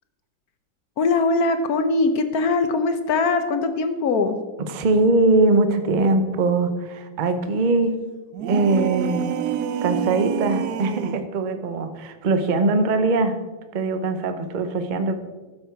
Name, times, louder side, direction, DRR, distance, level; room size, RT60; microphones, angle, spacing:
voice 1, 1.0-4.4, left 3 dB, 60° left, 8 dB, 1.1 m, -21 dB
voice 2, 4.7-7.9 8.5-9.3 9.8-13.4 13.7-15.1, right 2 dB, 45° right, 8 dB, 0.6 m, -21 dB
sound 1, 8.3-11.3, right 9 dB, 70° right, 1.0 m, -27 dB
13.0 x 7.1 x 4.5 m, 1.2 s
omnidirectional pair, 2.1 m